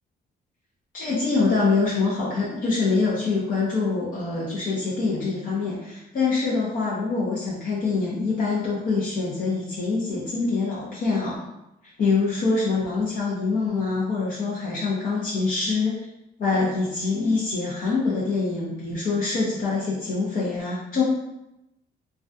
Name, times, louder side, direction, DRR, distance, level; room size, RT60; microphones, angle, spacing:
voice 1, 0.9-11.4 12.0-16.1 16.4-21.0, left 4 dB, 50° left, -7 dB, 0.6 m, -25 dB
2.3 x 2.2 x 2.5 m, 0.90 s
cardioid pair, 95°, 17 cm